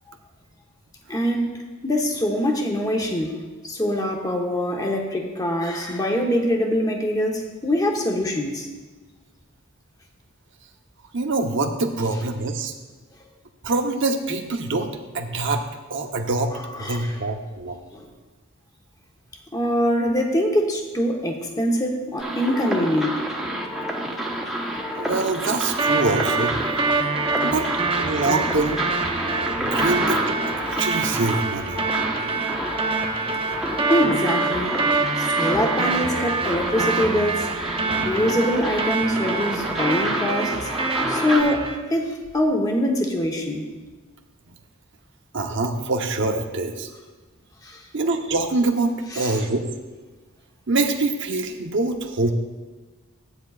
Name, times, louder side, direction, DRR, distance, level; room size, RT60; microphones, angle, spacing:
voice 1, 1.1-8.7 16.7-17.2 17.9-18.1 19.5-23.3 33.9-34.7 35.2-37.5 38.0-40.7 41.1-43.7 47.6-47.8 49.1-49.4, equal, 15° left, 1 dB, 1.0 m, -24 dB
voice 2, 11.1-12.7 13.6-14.9 15.1-15.6 15.9-17.8 24.9-26.5 27.4-27.7 28.0-28.8 29.6-30.2 30.7-31.8 37.9-38.1 45.3-46.9 47.9-49.7 50.7-52.3, right 3 dB, 55° right, 4 dB, 0.9 m, -24 dB
sound 1, 22.2-41.4, right 1 dB, ahead, 1.0 m, -29 dB
sound 2, 25.8-41.8, right 3 dB, 25° right, 0.7 m, -26 dB
15.5 x 9.1 x 2.4 m, 1.3 s
head